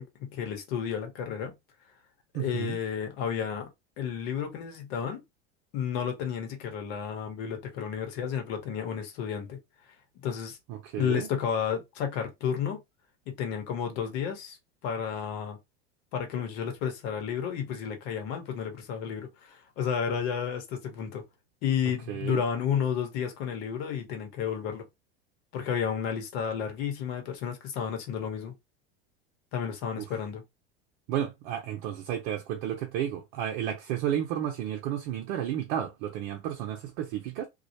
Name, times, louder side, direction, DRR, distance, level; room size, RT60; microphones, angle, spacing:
voice 1, 0.0-1.5 2.4-3.7 4.0-5.2 5.7-9.6 10.2-10.6 11.0-12.8 13.3-14.6 14.8-15.6 16.1-21.2 21.6-24.8 25.5-28.5 29.5-30.4, left 7 dB, 65° left, 1.0 m, -32 dB
voice 2, 2.3-2.8 10.7-11.3 22.1-22.4 30.0-30.1 31.1-37.5, right 10 dB, 65° right, 0.6 m, -32 dB
2.3 x 2.0 x 2.8 m
hypercardioid pair, 95°, 33 cm